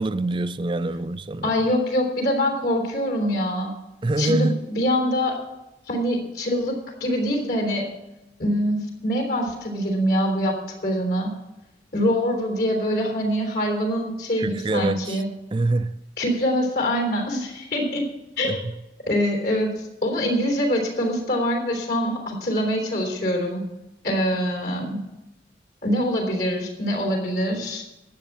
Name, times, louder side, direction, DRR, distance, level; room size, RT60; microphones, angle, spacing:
voice 1, 0.0-1.5 4.0-4.6 14.4-15.2 15.5-16.0 18.4-18.8, right 2 dB, 25° right, 0.4 m, -25 dB
voice 2, 1.4-3.7 4.2-5.4 5.9-7.9 8.4-10.6 10.8-11.3 11.9-15.3 16.2-18.1 18.4-18.6 19.1-23.7 24.0-25.0 25.8-27.8, equal, 60° left, 3.4 m, -24 dB
12.5 x 8.5 x 7.1 m
head